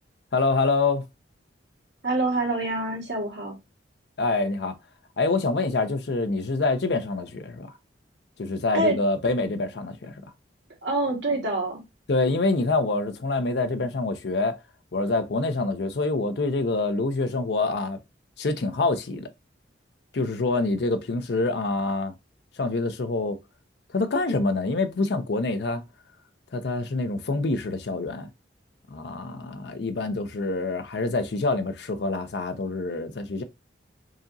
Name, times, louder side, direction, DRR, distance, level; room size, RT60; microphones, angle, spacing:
voice 1, 0.3-1.0 4.2-4.7 5.2-7.7 8.4-10.2 12.1-14.6 14.9-18.0 18.4-19.3 20.1-22.1 22.6-23.4 23.9-25.8 26.5-28.3 28.9-33.4, left 3 dB, 60° left, 0.5 m, -26 dB
voice 2, 2.0-3.6 8.7-9.0 10.8-11.8, right 2 dB, 65° right, 1.7 m, -26 dB
4.8 x 2.8 x 2.6 m
head